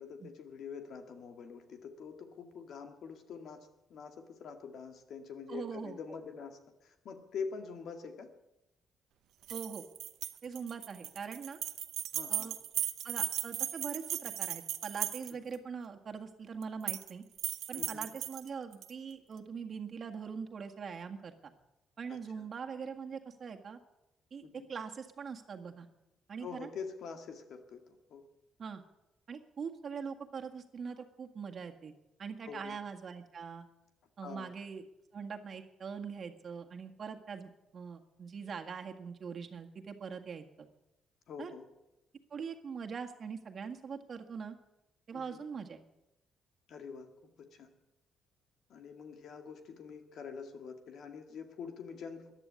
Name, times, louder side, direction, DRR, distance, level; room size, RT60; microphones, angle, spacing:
voice 1, 0.0-8.3 12.1-12.5 15.3-15.4 17.7-18.1 22.1-22.5 24.4-24.5 26.4-28.3 32.5-32.8 34.2-34.5 41.3-41.7 45.1-45.5 46.7-47.7 48.7-52.3, left 6 dB, 70° left, 6 dB, 2.1 m, -45 dB
voice 2, 5.5-6.0 9.5-9.8 10.4-11.6 12.3-12.5 13.0-17.2 17.7-21.5 22.0-23.8 24.3-25.9 26.3-26.7 28.6-28.8 29.3-31.9 32.2-33.7 34.2-34.8 35.1-40.7 41.4-41.5 42.3-44.6 45.1-45.8, right 6 dB, 50° right, 4 dB, 1.8 m, -42 dB
keys stir, 9.4-15.6 16.6-17.1 17.4-18.9, right 12 dB, 80° right, 0.8 m, -37 dB
14.5 x 11.0 x 8.4 m, 0.90 s
cardioid pair, 90°, 0 cm